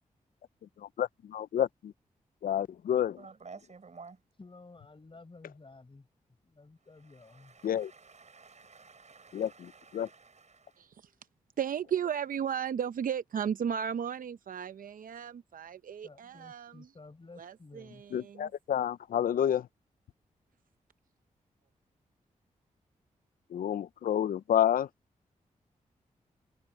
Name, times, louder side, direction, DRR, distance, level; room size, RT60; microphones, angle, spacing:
voice 1, 1.0-1.9 2.4-3.2 7.6-7.9 9.3-10.1 18.1-19.7 23.5-24.9, left 10 dB, 80° left, 0.5 m, -29 dB
voice 2, 3.2-4.2 7.2-10.8, right 4 dB, 55° right, 6.8 m, -53 dB
voice 3, 4.4-6.1 6.4-7.6 16.0-18.0, left 3 dB, 35° left, 4.7 m, -53 dB
voice 4, 11.6-16.9 17.4-18.5, right 8 dB, 75° right, 0.7 m, -35 dB
cardioid pair, 55°, 14 cm